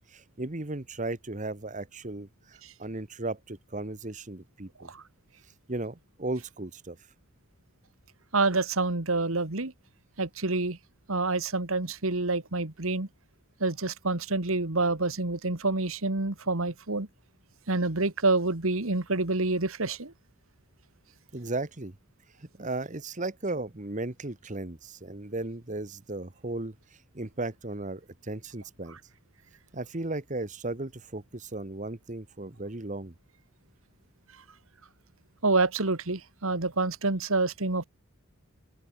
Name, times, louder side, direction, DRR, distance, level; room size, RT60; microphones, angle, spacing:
voice 1, 0.1-4.9 5.7-7.0 21.3-21.9 22.4-26.7 27.1-29.0 29.7-33.1, right 2 dB, 35° right, 1.3 m, -36 dB
voice 2, 8.3-9.7 10.2-10.8 11.1-13.1 13.6-17.1 17.7-20.1 35.4-37.8, right 3 dB, 70° right, 1.9 m, -27 dB
open air
head